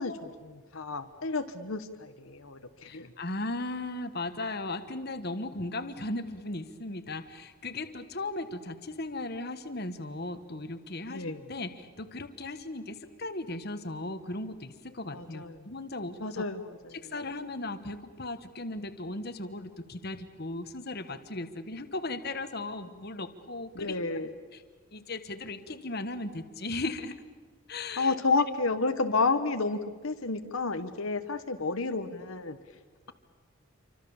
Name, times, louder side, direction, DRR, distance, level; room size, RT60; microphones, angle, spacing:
voice 1, 0.0-3.1 11.1-11.5 15.1-15.7 16.2-17.1 23.7-24.3 28.0-32.6, left 3 dB, 70° left, 8 dB, 1.2 m, -31 dB
voice 2, 2.8-16.4 17.0-24.0 24.5-24.6 24.9-27.2 27.7-28.1, left 2 dB, 45° left, 9 dB, 1.4 m, -37 dB
27.5 x 25.0 x 7.2 m, 1.5 s
head